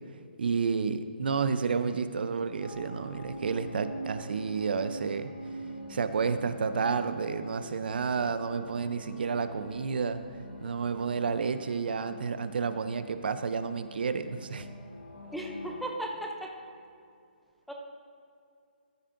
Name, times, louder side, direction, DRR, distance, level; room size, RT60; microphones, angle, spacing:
voice 1, 0.4-5.3 5.9-10.2 10.6-14.7, right 5 dB, 65° right, 11 dB, 0.5 m, -30 dB
sound 1, 2.6-15.8, right 1 dB, 80° left, 2.0 m, -44 dB
voice 2, 15.3-16.5 17.7-17.8, right 1 dB, ahead, 0 dB, 0.4 m, -36 dB
14.0 x 8.9 x 2.5 m, 2.4 s
hypercardioid pair, 170°, 6 cm